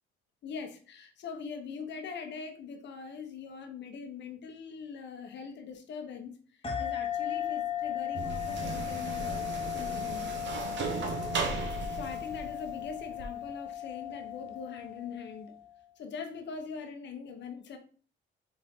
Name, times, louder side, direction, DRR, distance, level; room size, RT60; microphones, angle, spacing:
voice 1, 0.4-10.3 11.9-15.6 16.0-17.8, left 5 dB, 65° left, 0.9 m, -42 dB
sound 1, 6.6-15.7, left 10 dB, 30° left, 1.1 m, -36 dB
sound 2, 8.1-13.3, right 4 dB, 65° right, 0.9 m, -36 dB
4.0 x 3.4 x 3.6 m
cardioid pair, 90°, 20 cm